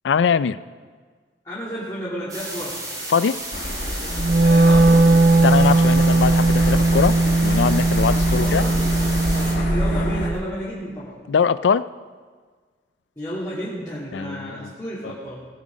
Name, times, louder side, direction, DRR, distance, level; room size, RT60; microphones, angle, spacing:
voice 1, 0.0-0.6 3.1-3.4 5.4-8.6 11.3-11.9 14.1-14.7 15.0-15.1, left 6 dB, 85° left, 16 dB, 0.4 m, -22 dB
voice 2, 1.4-2.8 4.4-5.2 8.3-8.8 9.5-11.2 13.2-15.4, equal, 20° left, -9 dB, 2.7 m, -32 dB
sound 1, 2.3-9.5, right 1 dB, 20° right, 2.4 m, -33 dB
sound 2, 3.5-10.3, left 1 dB, 50° left, 1.5 m, -26 dB
Wind instrument woodwind instrument, 4.1-10.4, right 2 dB, 55° right, 0.6 m, -18 dB
18.5 x 7.3 x 5.2 m, 1.5 s
head